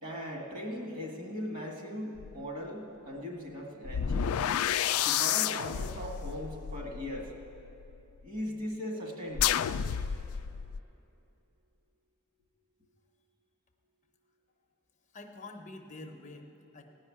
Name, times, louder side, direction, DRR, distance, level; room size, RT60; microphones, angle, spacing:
voice 1, 0.0-4.4 5.0-7.3 8.2-9.6, equal, 40° right, 0 dB, 1.9 m, -39 dB
sound 1, 2.2-2.3 3.8-7.9 9.3-10.8, left 9 dB, 75° left, 0.3 m, -31 dB
voice 2, 15.1-16.8, left 2 dB, 35° left, 4 dB, 0.7 m, -47 dB
16.5 x 5.6 x 9.8 m, 2.9 s
head